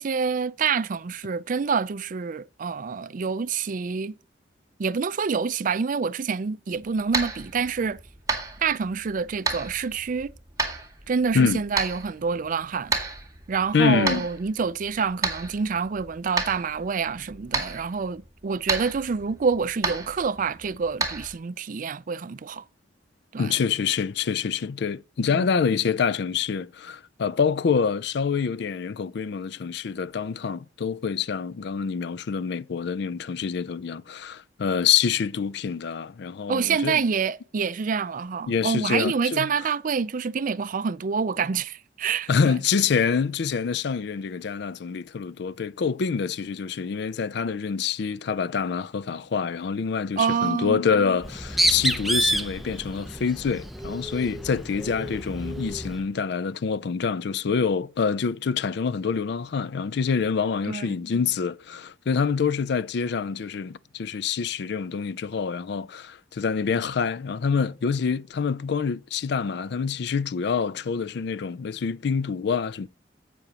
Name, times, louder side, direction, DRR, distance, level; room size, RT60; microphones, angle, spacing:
voice 1, 0.0-4.1 4.8-8.0 8.6-10.3 11.1-13.0 13.5-22.6 23.3-23.5 25.3-25.4 36.5-42.6 50.2-50.8 60.7-61.0, right 5 dB, 45° right, 0.4 m, -27 dB
sound 1, 6.7-21.3, right 3 dB, 20° right, 2.0 m, -33 dB
voice 2, 13.7-14.3 23.4-37.0 38.5-39.5 42.3-72.9, left 6 dB, 65° left, 0.4 m, -26 dB
Bird, 51.2-56.0, right 1 dB, ahead, 0.6 m, -28 dB
11.5 x 8.4 x 2.9 m
head